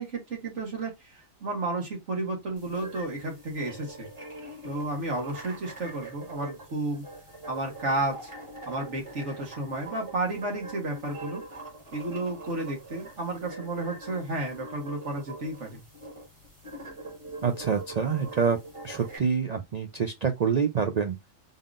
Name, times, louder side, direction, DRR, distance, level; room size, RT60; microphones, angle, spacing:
voice 1, 0.0-4.1 4.6-7.0 7.5-8.3 8.6-11.4 11.9-15.8, right 2 dB, 65° right, 1.8 m, -32 dB
sound 1, 2.6-19.2, right 2 dB, 25° right, 1.7 m, -43 dB
voice 2, 17.4-18.6 18.8-21.2, right 6 dB, 80° right, 0.3 m, -26 dB
3.7 x 3.7 x 2.4 m
omnidirectional pair, 1.4 m